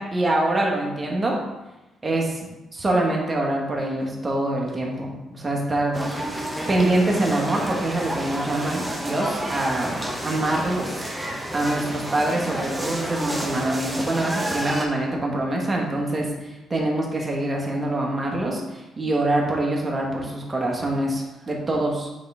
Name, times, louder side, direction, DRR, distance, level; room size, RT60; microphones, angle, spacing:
voice 1, 0.0-1.4 2.0-2.4 2.7-6.0 6.7-9.9 10.2-10.9 11.5-22.1, right 1 dB, 25° right, -1 dB, 1.6 m, -25 dB
sound 1, 5.9-14.9, right 1 dB, 10° right, 1.1 m, -30 dB
8.6 x 3.7 x 3.7 m, 1.0 s
cardioid pair, 90°, 0 cm